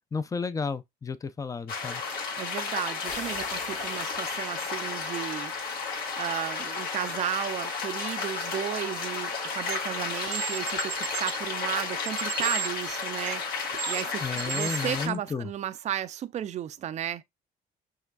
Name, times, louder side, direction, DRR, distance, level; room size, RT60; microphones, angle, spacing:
voice 1, 0.1-2.0 14.2-15.5, left 5 dB, 20° left, 0.6 m, -32 dB
sound 1, 1.7-15.1, left 4 dB, 65° left, 2.0 m, -33 dB
voice 2, 2.4-5.5 6.2-13.4 13.9-17.2, right 11 dB, 45° right, 0.4 m, -34 dB
sound 2, 3.0-6.7, left 4 dB, 45° left, 1.8 m, -45 dB
sound 3, 9.6-9.8 10.3-11.4 12.1-13.4 13.7-15.2, right 15 dB, 85° right, 0.7 m, -35 dB
5.7 x 3.1 x 2.3 m
cardioid pair, 110°, 17 cm